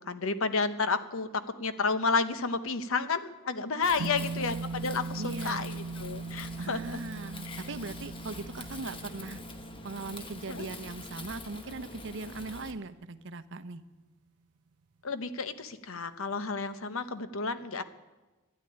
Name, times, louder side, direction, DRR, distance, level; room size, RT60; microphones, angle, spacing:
voice 1, 0.0-7.0 7.5-7.6 10.5-10.7 15.0-17.8, left 4 dB, 65° left, 12 dB, 0.9 m, -31 dB
Wind, 3.8-12.7, left 2 dB, 25° left, 1.1 m, -45 dB
sound 1, 4.0-12.4, right 4 dB, 90° right, 0.5 m, -40 dB
voice 2, 5.2-5.7 6.6-9.4 9.8-13.8, right 3 dB, 60° right, 13 dB, 0.8 m, -39 dB
13.0 x 10.5 x 9.9 m, 1.2 s
head